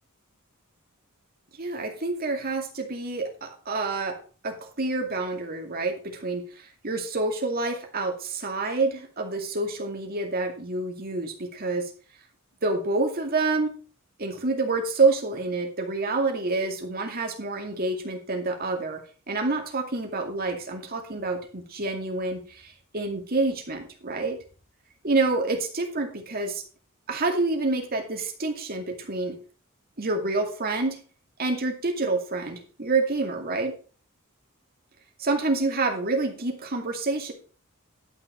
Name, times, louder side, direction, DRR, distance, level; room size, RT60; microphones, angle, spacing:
voice 1, 1.6-4.2 4.4-11.9 12.6-13.7 14.2-19.0 19.3-22.7 22.9-24.4 25.0-26.6 27.1-29.4 30.0-31.0 31.4-33.7 35.2-37.3, right 3 dB, 45° right, 3 dB, 2.3 m, -27 dB
11.5 x 6.1 x 5.2 m, 0.38 s
head